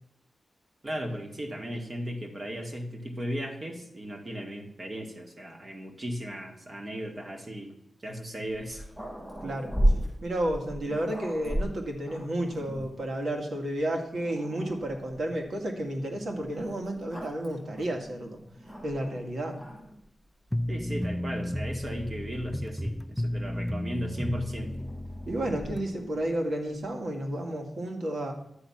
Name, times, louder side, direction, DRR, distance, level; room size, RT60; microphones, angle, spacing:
voice 1, 0.8-7.7 8.0-8.8 20.7-24.7, equal, 35° right, 3 dB, 1.8 m, -36 dB
Growling, 8.5-13.1 13.8-13.9 14.2-15.3 16.4-19.2 19.5-20.0 20.9-22.7 23.9-26.4, equal, 15° right, 5.7 m, -35 dB
voice 2, 9.4-9.7 10.2-18.4 18.8-19.6 25.3-28.3, right 1 dB, 70° right, 2 dB, 2.2 m, -31 dB
sound 1, 20.5-25.8, left 1 dB, 5° left, 0.4 m, -33 dB
12.0 x 8.2 x 5.8 m, 0.78 s
wide cardioid pair, 135°, 0 cm